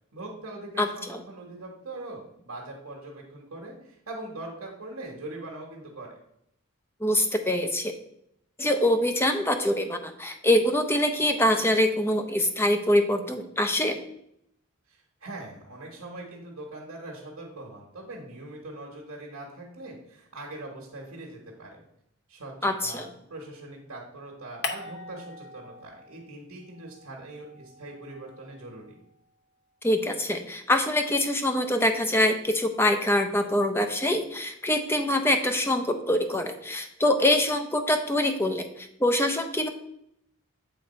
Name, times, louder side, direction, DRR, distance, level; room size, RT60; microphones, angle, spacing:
voice 1, 0.1-6.1 14.9-21.8 22.3-22.5 22.8-29.0, right 2 dB, 85° right, -3 dB, 1.3 m, -42 dB
voice 2, 0.8-1.2 7.0-7.9 8.6-14.0 22.6-23.1 29.8-39.7, left 1 dB, 10° left, 6 dB, 0.6 m, -24 dB
sound 1, 24.6-26.3 26.6-29.1, left 4 dB, 50° left, 0.8 m, -41 dB
7.8 x 3.8 x 4.3 m, 0.76 s
head